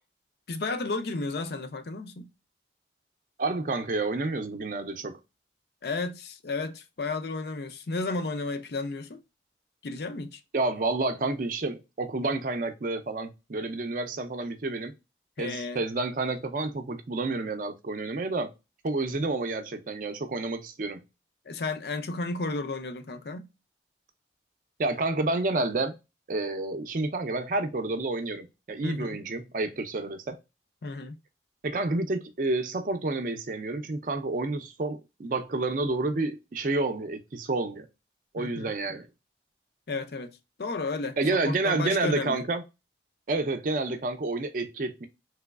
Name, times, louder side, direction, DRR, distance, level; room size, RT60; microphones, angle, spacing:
voice 1, 0.5-2.3 5.8-9.2 9.8-10.4 15.4-15.8 21.5-23.5 28.8-29.2 30.8-31.2 38.4-38.7 39.9-42.4, left 3 dB, 60° left, 0.5 m, -33 dB
voice 2, 3.4-5.2 10.5-14.9 15.4-18.5 18.8-21.0 24.8-25.9 26.3-30.4 31.6-37.9 38.3-39.1 41.2-42.6 43.3-45.1, right 2 dB, 45° right, 0.4 m, -29 dB
3.3 x 3.0 x 2.3 m
head